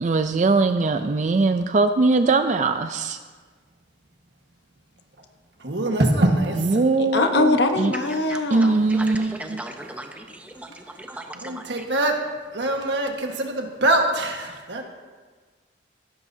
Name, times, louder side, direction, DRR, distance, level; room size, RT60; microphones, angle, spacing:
voice 1, 0.0-3.2 6.6-7.9 8.5-9.6, right 3 dB, 40° right, 8 dB, 0.4 m, -21 dB
voice 2, 5.6-6.7 11.3-12.2 12.5-14.8, right 1 dB, 75° right, 2 dB, 1.5 m, -23 dB
voice 3, 7.0-8.9, left 2 dB, 70° left, 6 dB, 1.0 m, -22 dB
voice 4, 8.3-11.6, right 1 dB, 10° right, 3 dB, 0.9 m, -37 dB
17.5 x 12.0 x 2.7 m, 1.5 s
head